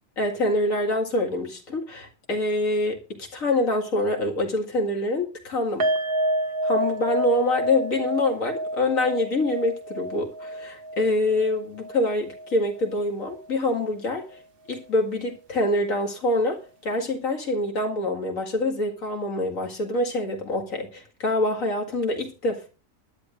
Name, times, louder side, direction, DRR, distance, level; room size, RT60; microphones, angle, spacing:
voice 1, 0.2-5.9 6.6-14.3 14.7-22.7, left 1 dB, 80° left, 2.4 m, -25 dB
sound 1, 5.8-13.0 13.3-13.5 13.8-13.9, right 1 dB, 45° right, 1.0 m, -29 dB
19.5 x 11.0 x 2.6 m
omnidirectional pair, 1.4 m